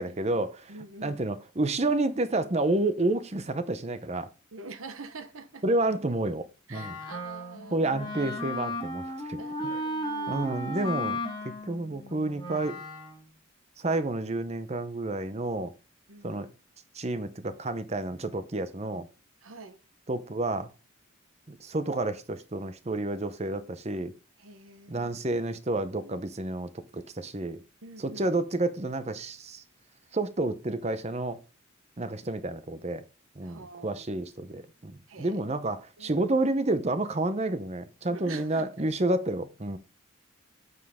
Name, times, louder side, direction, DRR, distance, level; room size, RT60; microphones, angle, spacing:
voice 1, 0.0-0.7 1.0-4.3 5.6-6.4 6.7-6.9 7.7-9.4 10.3-11.2 11.7-12.8 13.8-15.7 16.2-16.5 16.9-19.1 20.1-20.7 21.5-24.1 24.9-27.6 28.0-29.6 30.1-31.4 32.0-33.0 33.4-39.8, right 2 dB, 30° right, 0.7 m, -30 dB
voice 2, 0.7-1.2 4.5-5.6 6.7-7.8 9.4-10.5 16.1-16.4 19.4-19.8 24.4-25.1 26.0-26.2 27.8-28.3 33.4-34.0 35.1-35.4 36.0-36.3 38.1-38.9, right 3 dB, 80° right, 0.9 m, -45 dB
Wind instrument woodwind instrument, 6.7-13.3, left 1 dB, 20° left, 2.0 m, -35 dB
9.5 x 5.5 x 3.6 m
head